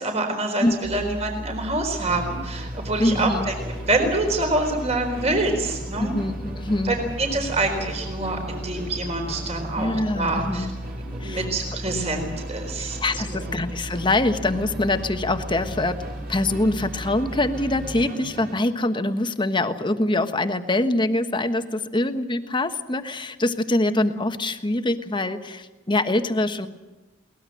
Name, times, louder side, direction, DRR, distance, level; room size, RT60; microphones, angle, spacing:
voice 1, 0.0-3.5 3.9-6.1 6.8-10.7 11.1-13.4, right 2 dB, 35° right, 4 dB, 4.2 m, -26 dB
sound 1, 0.8-18.1, equal, 10° right, 0.8 m, -36 dB
Musical instrument, 2.0-18.7, right 1 dB, 55° right, 4.2 m, -39 dB
voice 2, 3.0-3.5 6.0-6.9 9.8-10.7 11.2-11.4 12.8-16.0 16.3-26.7, left 2 dB, 25° left, 8 dB, 1.3 m, -24 dB
22.5 x 19.5 x 7.7 m, 1.1 s
head